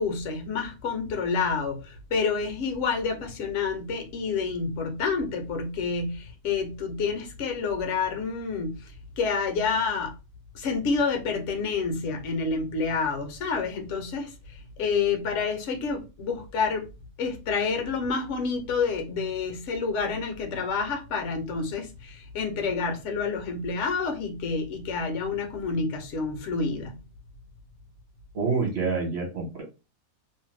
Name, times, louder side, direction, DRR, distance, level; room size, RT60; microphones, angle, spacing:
voice 1, 0.0-10.1 10.5-16.9 17.2-27.0, left 5 dB, 65° left, 0.9 m, -28 dB
voice 2, 28.3-29.6, right 4 dB, 50° right, 1.1 m, -27 dB
2.6 x 2.1 x 3.2 m
omnidirectional pair, 1.5 m